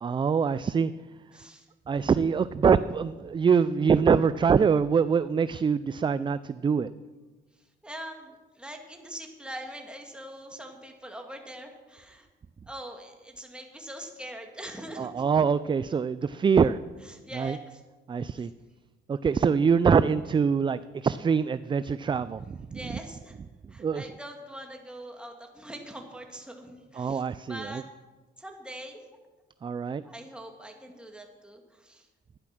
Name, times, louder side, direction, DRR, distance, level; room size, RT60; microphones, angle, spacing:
voice 1, 0.0-0.9 1.9-6.9 15.0-16.8 17.3-17.6 18.1-18.5 19.1-22.5 22.7-22.8 23.8-24.1 27.0-27.8 29.6-30.0, right 6 dB, 25° right, 15 dB, 0.3 m, -24 dB
voice 2, 1.3-1.7 7.8-12.3 12.7-15.2 17.0-17.8 18.4-18.5 22.7-23.4 23.7-27.8 28.4-29.0 30.0-32.1, right 1 dB, 5° right, 2 dB, 2.3 m, -43 dB
12.0 x 10.5 x 6.1 m, 1.3 s
cardioid pair, 90°, 20 cm